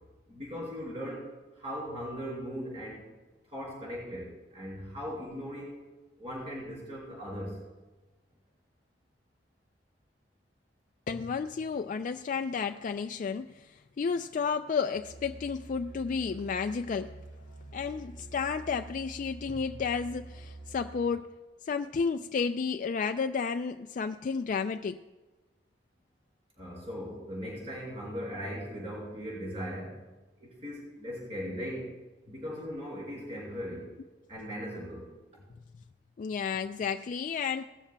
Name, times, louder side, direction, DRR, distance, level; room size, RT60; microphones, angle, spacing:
voice 1, 0.3-1.3 1.5-3.0 3.5-5.8 6.2-7.6 26.6-30.0 30.4-31.9 32.3-33.9 34.3-35.4, equal, 35° right, -5 dB, 4.5 m, -39 dB
voice 2, 11.1-17.2 17.7-21.3 21.6-25.0 36.2-37.6, left 5 dB, 45° left, 7 dB, 0.3 m, -32 dB
Musical instrument, 14.9-21.3, right 2 dB, 85° right, 3.7 m, -47 dB
18.5 x 13.0 x 2.3 m, 1.2 s
head